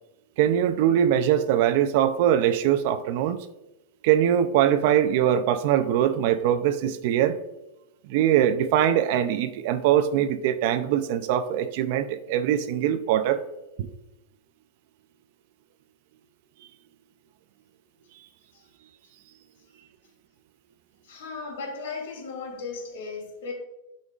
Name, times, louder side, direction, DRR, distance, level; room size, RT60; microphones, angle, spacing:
voice 1, 0.4-3.4 4.0-7.4 8.1-13.4 13.8-13.9, right 10 dB, 45° right, 0.5 m, -22 dB
voice 2, 21.0-23.5, left 4 dB, 70° left, 2.5 m, -36 dB
12.0 x 5.2 x 2.4 m
supercardioid pair, 170°, 0 cm